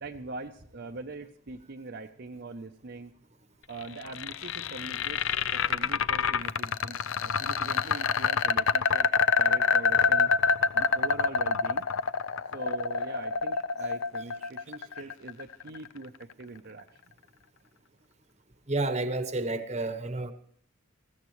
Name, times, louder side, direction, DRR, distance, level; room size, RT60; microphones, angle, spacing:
voice 1, 0.0-3.1 3.7-5.2 5.5-9.1 9.4-10.3 10.7-11.9 12.5-17.0, right 3 dB, 50° right, 0.6 m, -42 dB
sound 1, 3.8-15.9, left 5 dB, 65° left, 0.6 m, -26 dB
voice 2, 18.7-20.3, right 2 dB, 30° right, 0.9 m, -30 dB
20.5 x 15.5 x 3.1 m
head